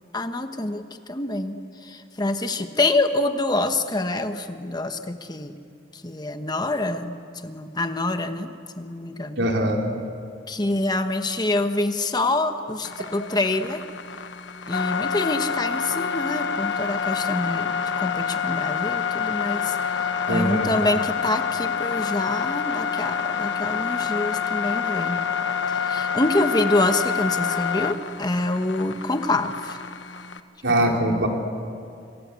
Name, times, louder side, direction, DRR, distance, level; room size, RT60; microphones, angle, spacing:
voice 1, 0.1-1.6 1.8-5.6 6.0-7.2 7.4-8.5 8.8-9.4 10.5-13.8 14.7-19.8 20.3-25.2 25.9-29.8 30.8-31.2, left 2 dB, 20° left, 8 dB, 1.2 m, -26 dB
voice 2, 9.4-9.8 20.3-20.7 30.6-31.3, right 1 dB, 80° right, 1 dB, 4.0 m, -22 dB
sound 1, 12.8-30.4, left 7 dB, 75° left, 1.2 m, -27 dB
27.0 x 26.5 x 8.3 m, 2.4 s
head